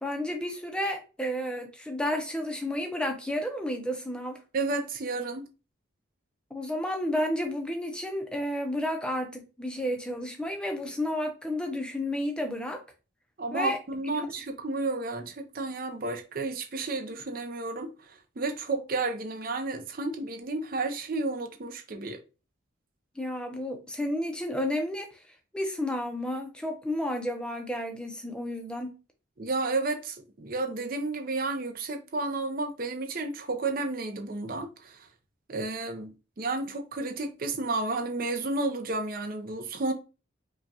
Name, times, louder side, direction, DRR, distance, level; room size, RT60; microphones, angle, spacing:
voice 1, 0.0-4.4 6.5-12.8 13.5-13.8 14.1-14.3 23.2-25.2 25.5-28.9, left 1 dB, 5° left, 0.5 m, -31 dB
voice 2, 4.5-5.5 13.4-22.2 29.4-35.0 35.5-39.9, right 3 dB, 45° right, 0.6 m, -32 dB
5.0 x 2.3 x 2.7 m
head